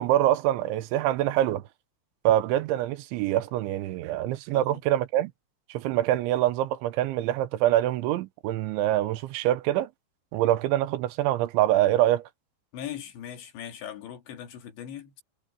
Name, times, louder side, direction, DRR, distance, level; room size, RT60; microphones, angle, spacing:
voice 1, 0.0-1.6 2.3-5.3 5.7-9.9 10.3-12.2, right 13 dB, 85° right, 3.3 m, -25 dB
voice 2, 12.7-15.2, left 10 dB, 75° left, 4.6 m, -39 dB
omnidirectional pair, 5.3 m